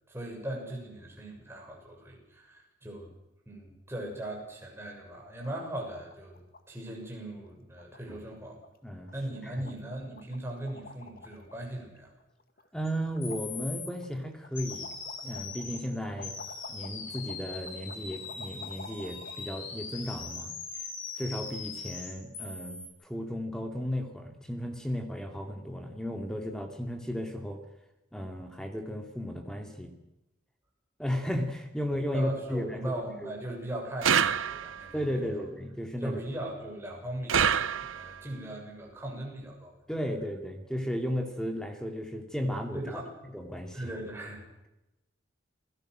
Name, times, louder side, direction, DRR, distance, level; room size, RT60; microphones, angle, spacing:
voice 1, 0.1-3.1 3.5-6.4 6.7-8.6 9.1-12.1 16.1-16.3 32.1-35.4 36.0-39.7 42.7-43.1 43.7-44.4, right 1 dB, 15° right, -1 dB, 7.0 m, -39 dB
sound 1, 4.2-4.6 4.9-5.0 5.2-5.5 5.8-6.6 6.9-7.1 7.4-7.5 7.8-8.3 8.6-8.8 9.1-9.4 9.6-11.6 12.0-12.8 13.0-19.4, left 3 dB, 50° left, 2.1 m, -50 dB
voice 2, 12.7-16.3 16.7-20.5 20.8-20.9 21.2-27.6 28.1-29.9 31.0-32.9 33.2-33.3 34.9-36.2 39.9-43.0 43.3-43.8, equal, 5° left, 4 dB, 2.5 m, -34 dB
sound 2, 12.8-12.9 13.2-13.9 14.6-15.8 16.2-22.9, left 5 dB, 85° left, 6.6 m, -41 dB
sound 3, 34.0-34.9 37.3-38.2, right 7 dB, 85° right, 0.8 m, -26 dB
29.0 x 16.5 x 6.4 m, 0.95 s
head